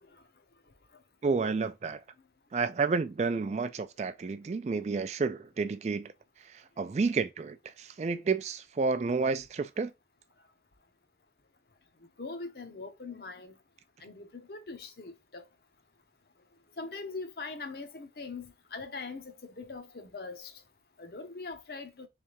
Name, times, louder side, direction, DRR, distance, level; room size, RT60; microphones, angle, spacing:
voice 1, 1.2-2.0 2.5-6.1 6.8-9.9, right 4 dB, 40° right, 0.3 m, -30 dB
voice 2, 12.2-13.6 14.0-15.5 16.8-20.5 21.0-22.1, left 4 dB, 60° left, 0.8 m, -42 dB
3.7 x 3.3 x 2.9 m
head